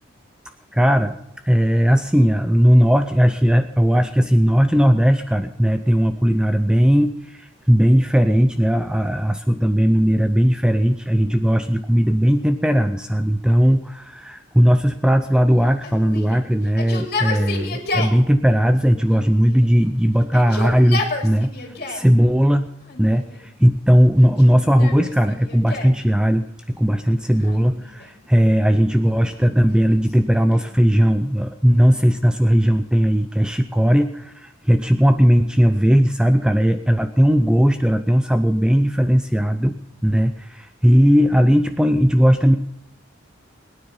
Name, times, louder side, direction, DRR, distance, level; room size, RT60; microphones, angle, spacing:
voice 1, 0.7-1.2 1.5-21.5 21.9-22.7 23.0-39.8 40.0-42.6, equal, 5° right, 8 dB, 0.5 m, -17 dB
Yell, 15.8-18.2 19.1-19.8 20.2-22.1 22.8-23.5 24.2-26.0 27.4-28.2 29.1-30.8, left 3 dB, 50° left, 2.9 m, -31 dB
21.0 x 9.6 x 5.5 m, 0.79 s
head